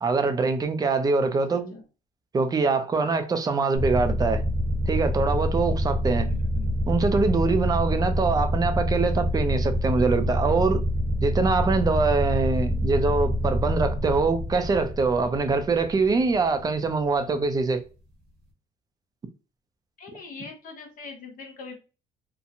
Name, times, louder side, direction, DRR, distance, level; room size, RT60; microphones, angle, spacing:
voice 1, 0.0-1.7 2.3-4.4 4.9-6.3 6.9-10.8 11.2-17.8, right 4 dB, 20° right, 0.4 m, -24 dB
voice 2, 1.2-1.8 6.2-6.8 20.0-21.8, left 4 dB, 55° left, 0.7 m, -42 dB
sound 1, 3.7-17.0, equal, 80° right, 1.1 m, -26 dB
2.8 x 2.1 x 2.5 m
cardioid pair, 110°, 17 cm